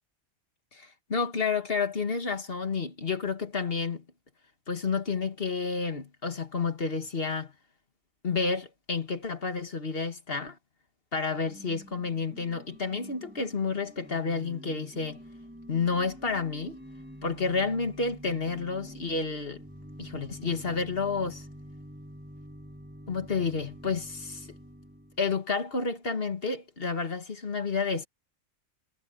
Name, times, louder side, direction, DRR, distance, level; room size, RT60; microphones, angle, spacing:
voice 1, 0.7-4.0 4.7-7.5 8.2-10.6 11.1-15.2 15.7-16.8 17.2-19.6 20.0-21.5 23.1-24.5 25.2-28.1, left 4 dB, 50° left, 2.0 m, -30 dB
Organ / Church bell, 11.2-25.4, equal, 10° right, 7.0 m, -47 dB
omnidirectional pair, 1.3 m